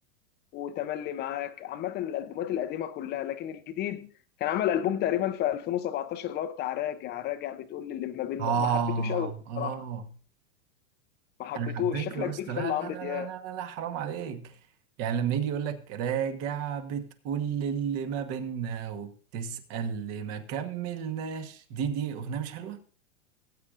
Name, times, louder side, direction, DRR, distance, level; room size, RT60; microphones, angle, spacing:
voice 1, 0.5-4.1 4.4-9.8 11.4-13.3, left 11 dB, 25° left, 0.7 m, -32 dB
voice 2, 8.4-10.1 11.5-14.6 15.0-22.8, right 7 dB, 40° right, 1.3 m, -32 dB
18.5 x 8.7 x 2.5 m
hypercardioid pair, 135°, 41 cm